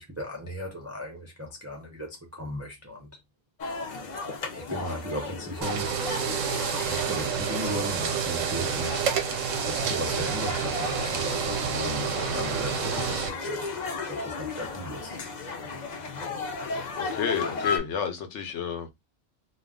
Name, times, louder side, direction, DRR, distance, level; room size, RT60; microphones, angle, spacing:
voice 1, 0.0-3.1 4.5-6.0 6.7-9.1 9.7-15.2, equal, 25° right, 0.3 m, -36 dB
sound 1, 3.6-17.8, left 4 dB, 50° left, 0.6 m, -35 dB
sound 2, 5.5-12.5, right 5 dB, 60° right, 0.7 m, -46 dB
sound 3, 5.6-13.3, right 7 dB, 90° right, 1.0 m, -29 dB
voice 2, 17.0-18.9, left 7 dB, 70° left, 0.9 m, -30 dB
2.3 x 2.3 x 3.5 m
omnidirectional pair, 1.3 m